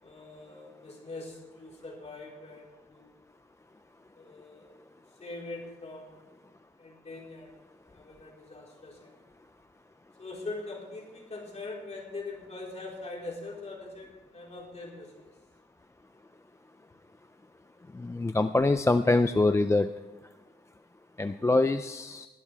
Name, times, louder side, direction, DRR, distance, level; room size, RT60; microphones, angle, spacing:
voice 1, 0.0-3.3 4.1-4.8 5.2-6.1 6.8-7.5 7.8-9.1 10.2-15.3, left 2 dB, 35° left, -3 dB, 4.1 m, -42 dB
voice 2, 17.9-19.9 21.2-22.3, left 2 dB, 15° left, 9 dB, 0.4 m, -24 dB
19.5 x 12.5 x 3.4 m, 1.2 s
wide cardioid pair, 135°, 19 cm